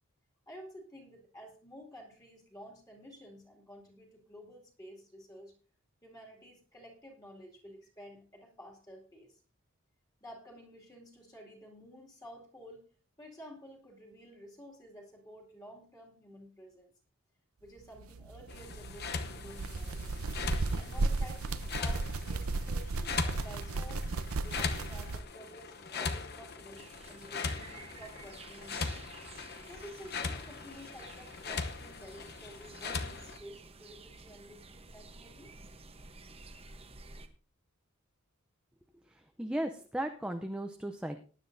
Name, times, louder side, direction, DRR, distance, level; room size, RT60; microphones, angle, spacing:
voice 1, 0.5-5.5 6.0-9.4 10.2-12.9 13.2-16.9 17.6-20.1 20.8-24.0 24.4-29.1 29.7-35.5, equal, 15° left, -1 dB, 2.5 m, -52 dB
sound 1, 18.0-25.2, right 3 dB, 85° right, 0.7 m, -35 dB
sound 2, 18.5-33.4, left 4 dB, 50° left, 0.9 m, -40 dB
sound 3, 26.7-37.3, right 3 dB, 30° right, 0.9 m, -52 dB
voice 2, 39.1-41.2, right 1 dB, 5° right, 5 dB, 0.5 m, -36 dB
19.0 x 9.9 x 2.7 m, 0.37 s
head